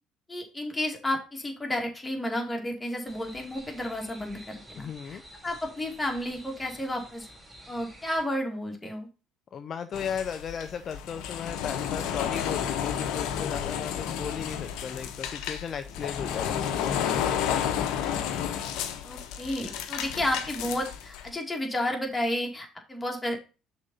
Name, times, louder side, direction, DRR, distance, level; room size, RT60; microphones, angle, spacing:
voice 1, 0.3-7.3 7.7-9.1 19.0-23.5, left 1 dB, 15° left, 1 dB, 2.3 m, -32 dB
sound 1, 3.1-8.2, equal, 20° right, 3.5 m, -50 dB
voice 2, 4.8-5.2 9.5-17.4, left 7 dB, 45° left, 10 dB, 0.5 m, -36 dB
sound 2, 9.9-21.3, left 9 dB, 70° left, 0.8 m, -31 dB
6.2 x 4.0 x 5.4 m, 0.32 s
hypercardioid pair, 60°, 0 cm